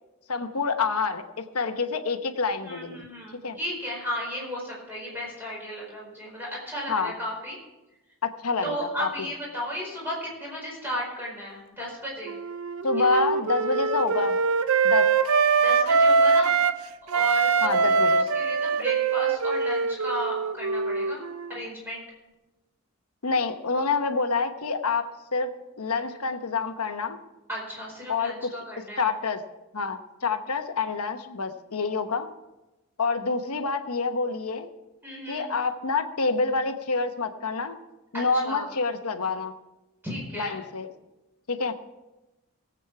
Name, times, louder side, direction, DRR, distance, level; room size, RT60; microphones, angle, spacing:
voice 1, 0.3-3.1 3.4-3.6 6.9-7.1 8.2-9.3 12.8-14.4 14.8-15.1 17.6-18.2 23.2-27.2 28.1-28.5 29.0-29.4 29.7-32.3 33.0-34.7 35.3-37.8 38.1-39.5 40.4-40.9 41.5-41.7, left 4 dB, 90° left, 8 dB, 1.0 m, -27 dB
voice 2, 2.6-7.6 8.6-12.3 12.9-13.1 15.6-16.5 17.0-21.2 21.5-22.0 27.5-29.1 35.0-35.5 38.1-38.7 40.0-40.6, equal, 10° right, -4 dB, 4.7 m, -34 dB
Wind instrument woodwind instrument, 12.3-16.8 17.1-21.6, right 4 dB, 75° right, 0.6 m, -23 dB
18.0 x 8.2 x 4.7 m, 1.0 s
head